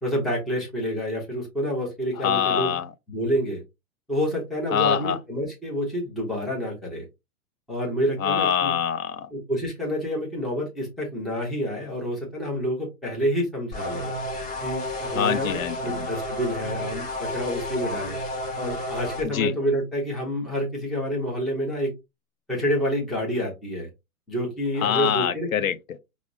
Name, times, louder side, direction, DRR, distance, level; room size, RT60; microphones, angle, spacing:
voice 1, 0.0-2.8 3.1-3.6 4.1-7.1 7.7-8.7 9.3-14.1 14.6-18.2 18.6-21.9 22.5-23.9 24.3-25.5, equal, ahead, 0.5 m, -28 dB
voice 2, 2.2-2.9 4.7-5.2 8.2-9.3 15.1-16.1 19.2-19.5 24.8-26.0, left 9 dB, 65° left, 0.5 m, -25 dB
sound 1, 13.7-19.2, left 1 dB, 20° left, 0.9 m, -31 dB
4.8 x 2.0 x 2.3 m
hypercardioid pair, 120°, 45 cm